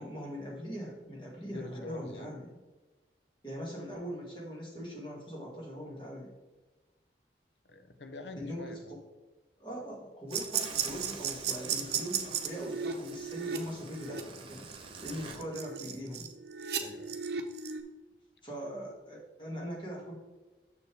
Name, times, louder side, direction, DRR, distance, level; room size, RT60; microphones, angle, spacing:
voice 1, 0.0-2.6 3.4-6.3 8.4-9.0 9.6-14.7 15.0-16.3 18.4-20.1, equal, 25° left, -3 dB, 2.1 m, -41 dB
voice 2, 1.5-2.3 7.7-9.0 15.1-15.3 16.8-17.2, left 3 dB, 75° left, 8 dB, 0.7 m, -46 dB
sound 1, 10.3-15.4, right 4 dB, 30° right, 0.8 m, -47 dB
sound 2, 10.3-17.8, right 7 dB, 65° right, 0.8 m, -35 dB
6.8 x 6.6 x 3.4 m, 1.2 s
head